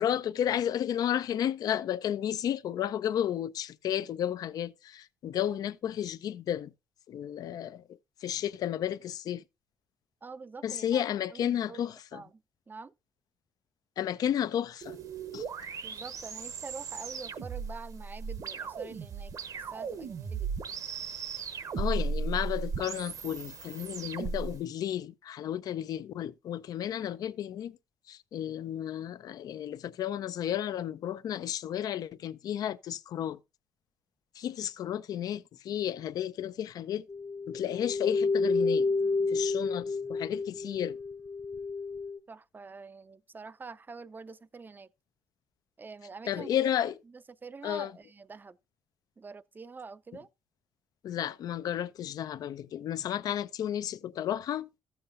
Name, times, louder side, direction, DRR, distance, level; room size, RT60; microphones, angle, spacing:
voice 1, 0.0-6.7 7.1-7.8 8.2-9.4 10.6-12.2 14.0-15.0 15.3-15.4 21.8-27.8 28.1-33.4 34.4-37.0 37.5-38.9 39.3-41.0 46.3-46.9 47.6-47.9 51.0-54.7, left 10 dB, 70° left, 0.5 m, -32 dB
voice 2, 10.2-12.9 15.8-20.8 42.3-44.9 45.8-46.7 47.1-48.6 49.2-50.3, right 4 dB, 30° right, 0.5 m, -46 dB
sound 1, 14.8-24.6, right 5 dB, 60° right, 0.9 m, -36 dB
sound 2, 37.1-42.2, left 3 dB, 30° left, 0.6 m, -30 dB
14.0 x 7.1 x 2.5 m
cardioid pair, 70°, 7 cm